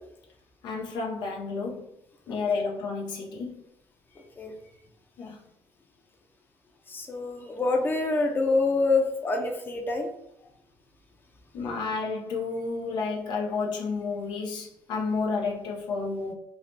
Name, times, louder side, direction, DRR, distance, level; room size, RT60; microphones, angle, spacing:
voice 1, 0.6-1.9 2.3-3.6 5.2-5.4 11.5-16.3, left 4 dB, 70° left, 0 dB, 0.6 m, -31 dB
voice 2, 6.9-10.1, left 3 dB, 25° left, 2 dB, 0.6 m, -26 dB
2.7 x 2.0 x 3.1 m, 0.77 s
supercardioid pair, 75°, 8 cm